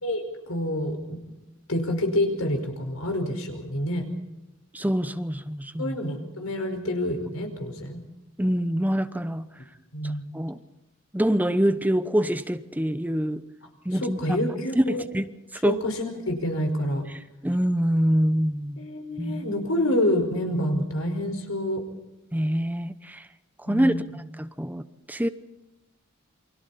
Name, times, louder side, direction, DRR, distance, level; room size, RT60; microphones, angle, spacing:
voice 1, 0.0-1.2 1.7-4.0 5.8-8.0 9.9-10.3 14.0-15.0 15.6-17.0 18.8-21.8 23.7-24.1, left 1 dB, 80° left, 4 dB, 5.0 m, -27 dB
voice 2, 4.7-6.0 8.4-9.5 10.0-10.6 11.1-13.4 13.8-14.4 14.8-15.3 15.6-15.8 17.4-18.8 19.2-19.5 22.3-23.3 23.7-24.0 24.4-24.8 25.1-25.3, equal, 10° right, 11 dB, 0.8 m, -25 dB
29.0 x 24.5 x 4.2 m, 0.95 s
head